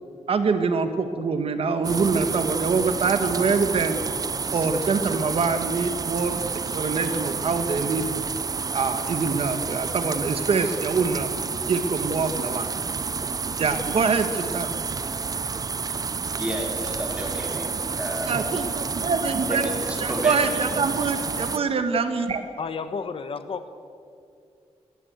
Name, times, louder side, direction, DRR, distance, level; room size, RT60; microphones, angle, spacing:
voice 1, 0.3-4.0 4.5-6.4 6.7-8.2 8.7-11.3 11.7-12.7 13.6-14.7 18.3-19.7 20.0-22.4, right 4 dB, 55° right, 8 dB, 1.5 m, -24 dB
sound 1, 1.8-21.6, right 5 dB, 30° right, 0.6 m, -30 dB
voice 2, 16.4-18.4 19.5-20.4, equal, 10° right, 1 dB, 4.5 m, -32 dB
voice 3, 22.6-23.7, left 5 dB, 50° left, 10 dB, 1.2 m, -32 dB
24.0 x 19.5 x 8.1 m, 2.4 s
wide cardioid pair, 155°, 12 cm